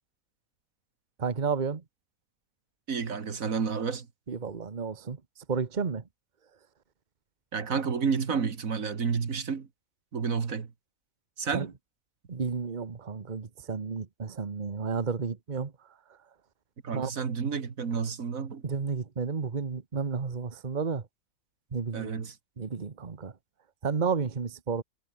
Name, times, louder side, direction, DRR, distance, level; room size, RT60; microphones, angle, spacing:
voice 1, 1.2-1.8 4.3-5.2 5.5-6.0 11.5-11.7 12.3-15.7 16.9-17.1 18.6-21.0 21.7-22.1 22.6-23.3 23.8-24.8, right 5 dB, 35° right, 1.3 m, -31 dB
voice 2, 2.9-4.1 7.5-9.7 10.1-10.7 11.4-11.7 16.8-18.6 21.9-22.3, right 6 dB, 75° right, 2.2 m, -30 dB
omnidirectional pair, 1.4 m